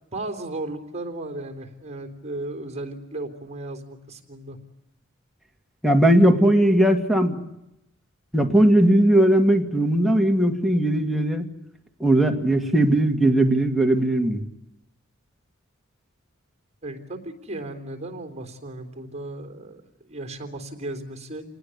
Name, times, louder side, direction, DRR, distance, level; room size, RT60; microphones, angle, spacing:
voice 1, 0.1-4.6 16.8-19.8 20.1-21.4, right 2 dB, 30° right, 6 dB, 3.5 m, -35 dB
voice 2, 5.8-7.4 8.3-11.5 12.0-14.4, right 1 dB, ahead, 3 dB, 2.3 m, -18 dB
27.5 x 19.5 x 8.4 m, 0.85 s
head